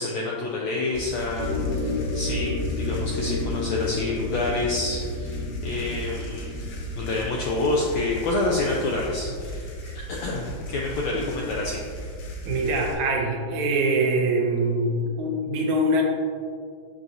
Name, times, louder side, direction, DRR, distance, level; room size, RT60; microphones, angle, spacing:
voice 1, 0.0-9.7 10.1-11.8, left 2 dB, 90° left, -2 dB, 1.5 m, -28 dB
sound 1, 0.9-12.9, equal, 70° left, 2.7 m, -36 dB
sound 2, 1.4-7.9, left 2 dB, 55° right, 1.8 m, -31 dB
voice 2, 12.5-16.0, right 1 dB, 75° right, 1 dB, 1.8 m, -24 dB
8.5 x 6.1 x 2.7 m, 2.1 s
omnidirectional pair, 3.9 m